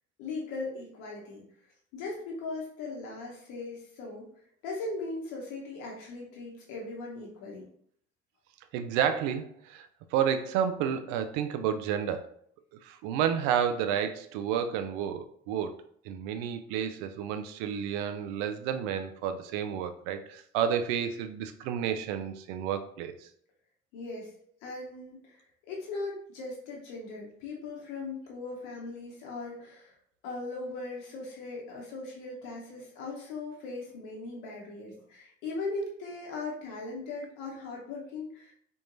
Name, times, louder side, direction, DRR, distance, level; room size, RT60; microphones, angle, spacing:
voice 1, 0.2-1.4 1.9-4.3 4.6-7.7 23.9-24.3 24.6-25.4 25.7-29.9 30.2-38.5, left 3 dB, 70° left, -2 dB, 1.0 m, -39 dB
voice 2, 8.7-12.3 12.8-15.7 16.0-23.3, right 8 dB, 70° right, 9 dB, 0.5 m, -31 dB
3.6 x 3.0 x 2.5 m, 0.63 s
hypercardioid pair, 50°, 34 cm